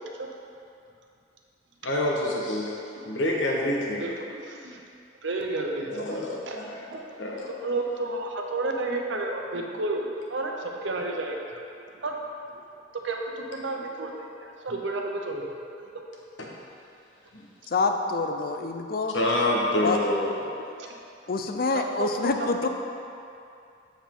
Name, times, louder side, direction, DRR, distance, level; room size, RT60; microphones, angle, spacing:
voice 1, 1.8-2.8 3.1-4.1 5.9-6.9 7.2-7.5 16.5-16.6 17.3-17.5 19.1-20.4, left 1 dB, 80° left, -2 dB, 1.2 m, -27 dB
voice 2, 4.0-4.8 5.2-6.2 6.5-6.6 6.9-7.0 7.6-11.6 12.0-12.2 12.9-15.5 15.8-16.0 18.6-18.7 19.8-19.9 21.7-22.1 22.4-22.7, right 2 dB, 75° right, 1 dB, 0.8 m, -31 dB
voice 3, 17.7-19.1 19.8-20.0 21.3-22.7, left 3 dB, 50° left, 5 dB, 0.5 m, -26 dB
7.2 x 7.2 x 3.7 m, 2.6 s
head